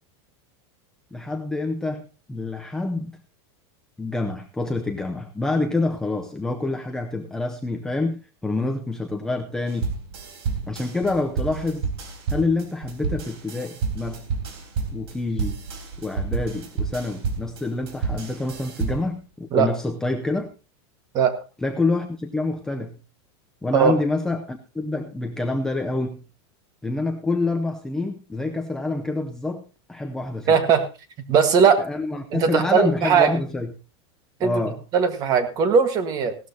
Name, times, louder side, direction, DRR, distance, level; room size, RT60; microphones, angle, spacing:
voice 1, 1.1-3.1 4.0-9.9 10.7-11.9 12.3-14.2 14.9-15.6 16.0-20.5 21.6-23.0 23.6-26.2 26.8-29.6 29.9-30.6 31.8-33.7 34.4-34.8, left 2 dB, 5° left, 3 dB, 0.6 m, -27 dB
sound 1, 9.7-19.2, right 5 dB, 65° right, 4.0 m, -30 dB
voice 2, 30.5-30.9 31.3-31.8 32.3-33.3 34.4-34.6 34.9-36.4, right 6 dB, 25° right, 9 dB, 1.5 m, -19 dB
17.0 x 12.5 x 2.8 m, 0.30 s
supercardioid pair, 175°, 14 cm